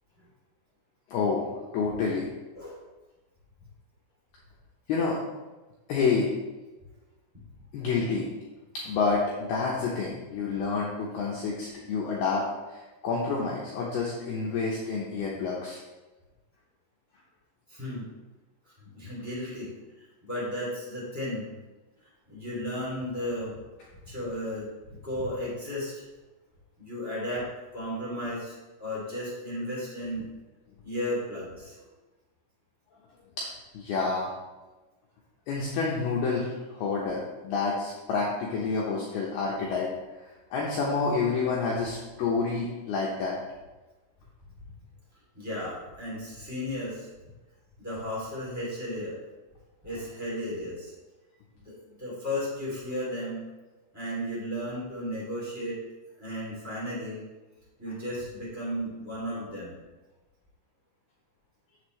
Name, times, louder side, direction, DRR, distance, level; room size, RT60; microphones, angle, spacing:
voice 1, 1.1-1.5 1.7-2.3 4.9-5.2 5.9-6.3 7.7-8.3 8.9-15.8 33.4-34.3 35.5-39.9 40.5-43.4, left 4 dB, 80° left, -4 dB, 2.3 m, -28 dB
voice 2, 2.5-2.9 17.7-18.1 18.8-21.5 22.3-23.5 24.0-26.0 26.8-27.5 27.7-30.3 30.8-31.8 45.3-47.1 47.8-49.2 49.8-50.9 51.6-53.4 53.9-55.8 56.2-57.2 57.8-59.8, left 1 dB, 10° right, -8 dB, 1.0 m, -34 dB
8.1 x 7.7 x 3.2 m, 1.1 s
omnidirectional pair, 5.8 m